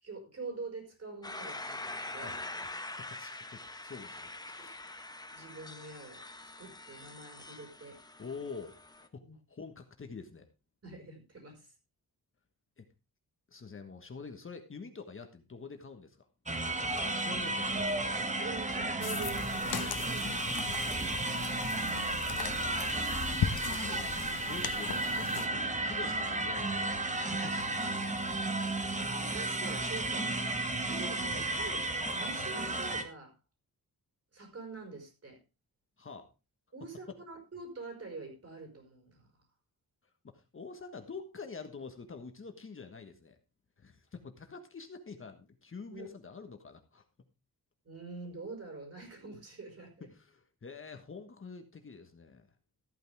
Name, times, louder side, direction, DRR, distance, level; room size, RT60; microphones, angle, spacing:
voice 1, 0.0-2.4 4.6-4.7 5.3-6.2 6.6-8.0 9.2-9.3 10.8-11.7 18.4-20.4 21.2-21.7 29.1-30.4 30.8-31.9 32.1-33.3 34.3-35.4 36.7-39.3 45.9-46.1 47.8-50.1, right 3 dB, 40° right, 3 dB, 5.5 m, -45 dB
sound 1, 1.2-9.1, left 2 dB, 10° left, 1.1 m, -44 dB
voice 2, 2.2-4.3 4.6-4.8 8.2-10.5 12.8-12.9 13.5-16.3 16.9-18.2 20.2-20.8 22.7-26.9 27.3-28.5 36.0-36.3 40.2-43.4 43.8-47.0 50.0-52.5, left 4 dB, 35° left, 6 dB, 1.4 m, -47 dB
sound 2, 16.5-33.0, right 2 dB, 20° right, 1.5 m, -33 dB
sound 3, 19.0-25.5, left 9 dB, 90° left, 1.1 m, -38 dB
14.0 x 9.2 x 3.5 m, 0.29 s
wide cardioid pair, 145°, 36 cm